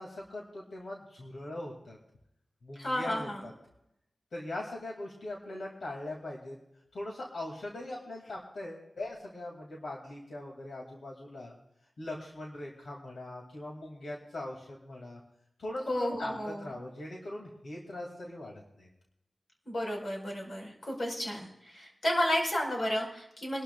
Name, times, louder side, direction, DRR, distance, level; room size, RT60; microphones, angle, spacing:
voice 1, 0.0-2.0 2.6-3.5 4.3-6.6 6.9-11.5 12.0-15.2 15.6-18.9, left 1 dB, 80° left, -2 dB, 2.4 m, -41 dB
voice 2, 2.8-3.4 15.9-16.6 19.6-23.6, equal, 50° left, 0 dB, 4.9 m, -32 dB
25.0 x 12.5 x 2.4 m, 0.82 s
wide cardioid pair, 105°, 0 cm